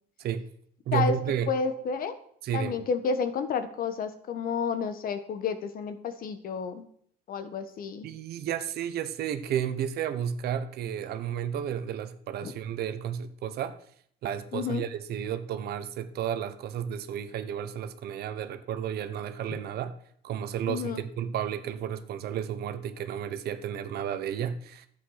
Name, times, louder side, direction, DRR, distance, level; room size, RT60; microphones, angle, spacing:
voice 1, 0.9-1.5 2.4-2.8 8.0-13.8 14.2-19.9 20.2-24.9, right 9 dB, 70° right, 10 dB, 1.2 m, -32 dB
voice 2, 1.5-2.2 2.5-6.8 7.3-8.1 12.4-12.5 14.5-14.8 19.5-19.6 20.7-21.0, left 5 dB, 60° left, 10 dB, 1.4 m, -30 dB
11.5 x 8.4 x 5.8 m, 0.63 s
cardioid pair, 110°, 17 cm